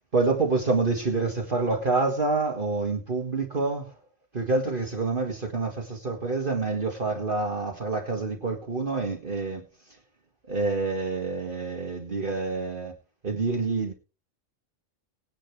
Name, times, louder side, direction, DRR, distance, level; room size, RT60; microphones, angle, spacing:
voice 1, 0.1-4.0 4.3-10.0 10.5-12.9 13.2-13.9, right 3 dB, 45° right, 2.0 m, -27 dB
19.0 x 10.5 x 3.3 m
omnidirectional pair, 1.3 m